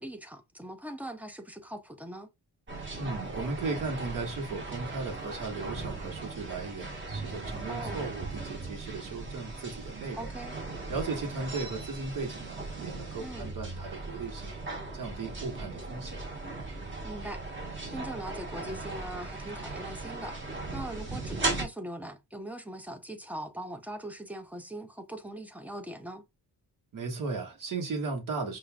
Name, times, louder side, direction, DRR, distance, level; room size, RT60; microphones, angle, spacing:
voice 1, 0.0-2.3 7.7-8.0 10.1-10.5 13.2-13.5 17.0-17.4 17.9-20.4 20.7-26.2, right 1 dB, 5° right, 0.4 m, -41 dB
sound 1, 2.7-21.6, right 3 dB, 30° right, 1.3 m, -38 dB
voice 2, 3.0-10.3 10.9-14.5 14.9-16.2 26.9-28.6, right 3 dB, 55° right, 1.5 m, -36 dB
5.4 x 2.4 x 2.2 m
cardioid pair, 140°, 38 cm